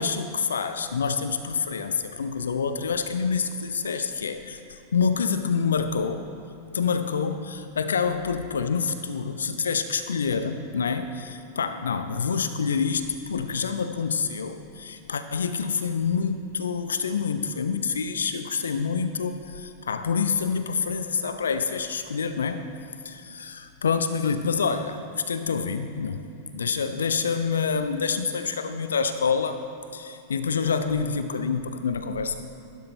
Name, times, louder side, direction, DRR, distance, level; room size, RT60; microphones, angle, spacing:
voice 1, 0.0-6.2 6.7-22.7 23.0-26.2 26.5-29.6 29.9-32.4, left 5 dB, 70° left, 10 dB, 0.5 m, -27 dB
15.0 x 12.0 x 3.3 m, 2.6 s
figure-of-eight pair, 90°, 0 cm